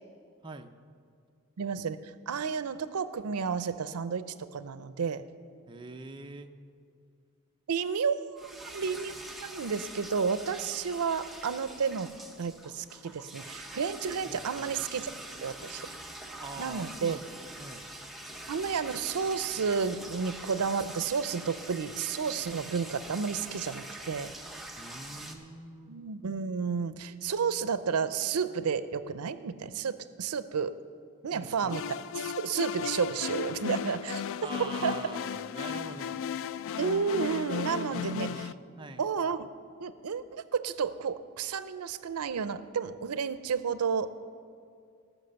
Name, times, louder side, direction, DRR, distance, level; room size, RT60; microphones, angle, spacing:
voice 1, 1.6-2.0 2.3-4.3 4.5-5.2 7.7-8.4 8.7-15.1 15.4-15.8 16.6-17.2 18.5-24.3 25.9-30.7 31.2-31.9 32.2-34.2 34.6-34.9 36.8-38.5 39.0-39.5 39.8-44.2, right 6 dB, 85° right, 13 dB, 0.5 m, -31 dB
voice 2, 5.7-6.5 14.2-14.9 16.4-17.3 17.6-17.9 24.8-26.0 31.3-31.8 34.4-36.2 37.9-38.5 38.8-39.1, right 3 dB, 20° right, 5 dB, 0.6 m, -44 dB
sound 1, 8.4-25.4, right 1 dB, ahead, 0.9 m, -44 dB
sound 2, 31.7-38.5, left 7 dB, 60° left, 0.3 m, -35 dB
18.5 x 6.3 x 6.8 m, 2.4 s
head